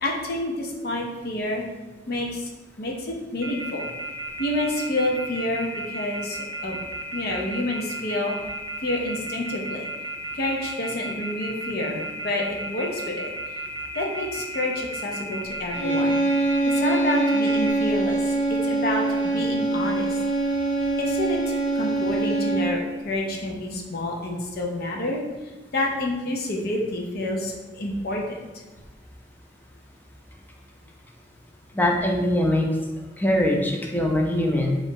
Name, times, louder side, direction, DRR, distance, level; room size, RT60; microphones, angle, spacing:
voice 1, 0.0-1.6 2.1-2.5 2.8-3.9 4.4-6.8 7.1-8.3 8.8-9.9 10.3-13.3 13.9-16.2 16.6-20.2 21.0-28.4, left 1 dB, 60° left, 0 dB, 0.6 m, -28 dB
Telephone, 3.4-17.7, right 2 dB, 75° right, 0.5 m, -33 dB
sound 1, 15.7-22.9, right 2 dB, 75° left, 1.3 m, -24 dB
voice 2, 31.7-32.7 33.2-34.8, left 1 dB, 10° left, 0 dB, 0.5 m, -22 dB
3.8 x 2.5 x 3.6 m, 1.2 s
head